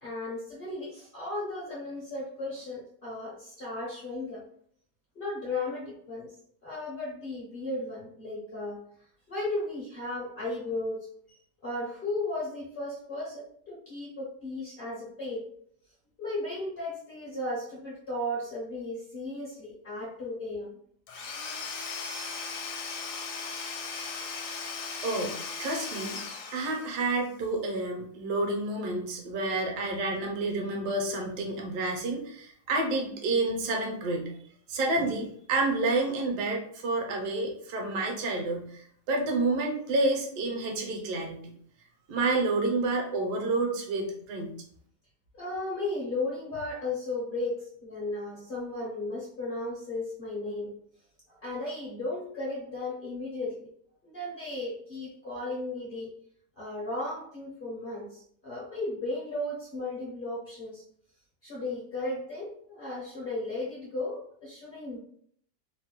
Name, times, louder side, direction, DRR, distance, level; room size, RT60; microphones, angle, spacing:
voice 1, 0.0-4.4 5.1-6.3 6.6-8.8 9.3-11.4 11.6-15.4 16.2-20.8 45.3-50.7 51.3-53.7 54.0-56.1 56.6-60.8 61.4-65.0, left 2 dB, 55° left, -5 dB, 0.6 m, -35 dB
Domestic sounds home sounds / Tools, 21.1-27.2, left 5 dB, 80° left, 1.1 m, -37 dB
voice 2, 25.0-26.2 26.5-34.3 34.7-41.5 42.1-44.5, right 2 dB, 75° right, 1 dB, 1.2 m, -29 dB
3.1 x 2.1 x 2.9 m, 0.62 s
omnidirectional pair, 1.8 m